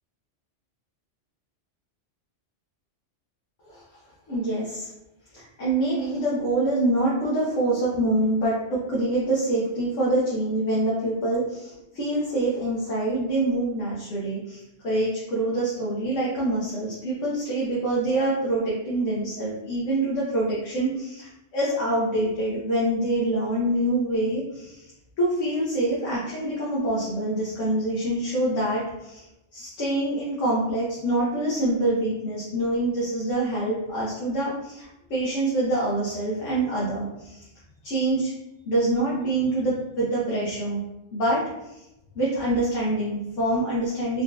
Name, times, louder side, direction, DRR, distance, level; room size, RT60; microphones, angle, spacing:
voice 1, 4.3-4.9 5.4-24.9 25.2-29.2 29.5-37.5 37.8-38.3 38.7-40.8 41.1-41.8 42.1-44.2, right 1 dB, 85° left, -6 dB, 1.2 m, -25 dB
3.7 x 2.9 x 2.3 m, 0.92 s
omnidirectional pair, 1.2 m